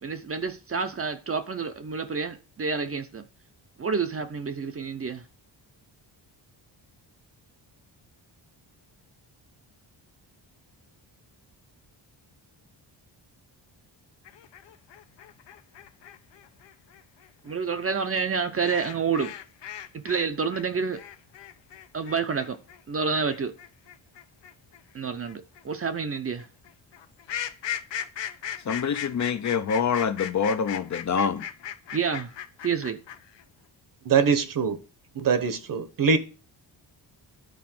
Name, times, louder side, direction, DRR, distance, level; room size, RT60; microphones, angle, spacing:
voice 1, 0.0-3.3 3.8-5.3 17.4-19.3 19.9-21.0 21.9-22.6 22.9-23.6 24.9-26.5 31.9-32.3 32.6-33.0, right 5 dB, 30° right, 0.6 m, -29 dB
sound 1, 14.3-20.3 20.5-33.4, left 9 dB, 75° left, 0.8 m, -38 dB
voice 2, 28.7-31.4, left 6 dB, 40° left, 0.5 m, -26 dB
voice 3, 34.0-34.8 35.1-36.2, right 5 dB, 50° right, 1.0 m, -23 dB
10.5 x 4.2 x 5.9 m
wide cardioid pair, 165°, 44 cm